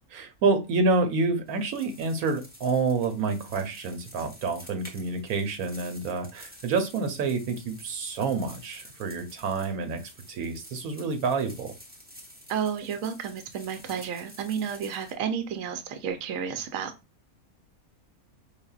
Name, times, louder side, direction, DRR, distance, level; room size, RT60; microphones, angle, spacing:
voice 1, 0.1-10.0 10.3-11.7, right 4 dB, 85° right, 1.2 m, -28 dB
sound 1, 1.5-15.1, equal, 10° right, 0.6 m, -50 dB
voice 2, 12.5-16.9, right 7 dB, 70° right, 1.0 m, -31 dB
4.9 x 2.6 x 2.3 m
omnidirectional pair, 1.5 m